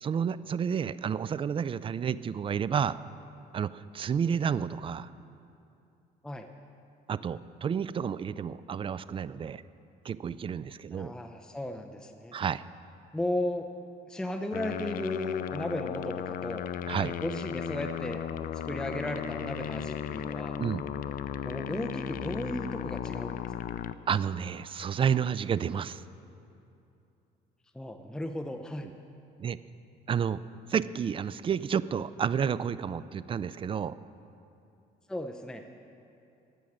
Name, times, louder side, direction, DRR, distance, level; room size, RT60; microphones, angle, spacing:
voice 1, 0.0-3.0 3.5-5.1 7.1-9.6 10.0-11.1 12.3-12.6 16.9-17.1 20.6-20.9 24.1-26.0 29.4-29.6 30.1-30.4 30.7-34.0, right 7 dB, 30° right, 17 dB, 0.4 m, -30 dB
voice 2, 10.9-12.3 13.1-13.7 14.1-16.7 17.2-18.2 18.5-20.6 21.4-23.7 27.7-28.9 35.1-35.7, left 1 dB, 5° left, 5 dB, 0.6 m, -35 dB
sound 1, 14.5-23.9, left 10 dB, 55° left, 0.5 m, -36 dB
16.0 x 6.3 x 9.5 m, 2.7 s
cardioid pair, 110°, 17 cm